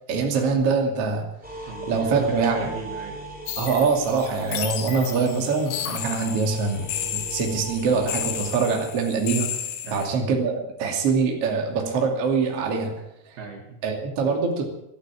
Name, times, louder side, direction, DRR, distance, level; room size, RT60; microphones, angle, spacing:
voice 1, 0.1-1.3 1.6-2.7 3.6-9.6 9.9-13.0 13.8-14.6, right 4 dB, 40° right, 2 dB, 2.7 m, -24 dB
sound 1, 1.4-8.5, right 2 dB, ahead, 2.4 m, -39 dB
voice 2, 1.7-3.4 9.8-10.1 13.4-13.8, right 5 dB, 60° right, 2 dB, 3.3 m, -36 dB
sound 2, 3.5-10.1, left 10 dB, 75° left, 3.7 m, -33 dB
13.0 x 12.0 x 8.8 m, 0.83 s
omnidirectional pair, 5.5 m